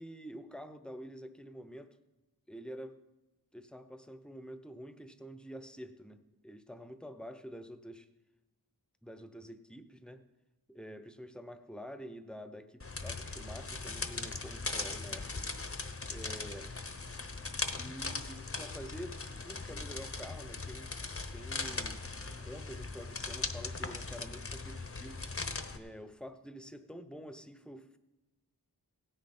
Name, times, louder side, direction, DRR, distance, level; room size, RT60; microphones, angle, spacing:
voice 1, 0.0-2.0 2.5-3.0 3.5-8.1 9.0-10.2 10.7-15.4 16.1-16.7 17.8-20.9 21.3-22.0 22.4-25.2 25.7-28.0, equal, ahead, 10 dB, 0.9 m, -47 dB
sound 1, 12.8-25.8, left 3 dB, 35° left, 0.9 m, -39 dB
16.0 x 9.8 x 4.4 m, 1.1 s
wide cardioid pair, 45°, 38 cm